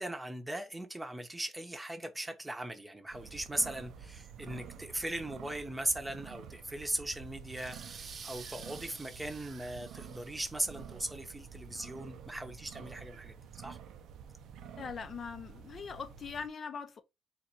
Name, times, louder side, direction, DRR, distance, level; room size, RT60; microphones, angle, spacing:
voice 1, 0.0-13.8, right 1 dB, 10° right, 0.9 m, -38 dB
sound 1, 3.1-16.5, right 8 dB, 80° right, 0.6 m, -49 dB
sound 2, 7.5-10.9, right 5 dB, 45° right, 0.7 m, -50 dB
voice 2, 14.8-17.0, left 6 dB, 50° left, 0.7 m, -41 dB
3.8 x 2.6 x 4.4 m
cardioid pair, 90°, 0 cm